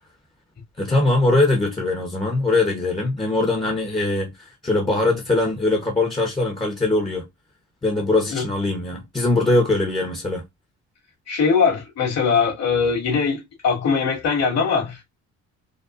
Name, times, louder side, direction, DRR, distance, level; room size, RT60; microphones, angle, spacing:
voice 1, 0.8-7.3 7.8-10.4, left 2 dB, 15° left, 0.9 m, -21 dB
voice 2, 11.3-15.0, left 5 dB, 55° left, 2.3 m, -21 dB
5.1 x 2.3 x 2.5 m
cardioid pair, 130°, 31 cm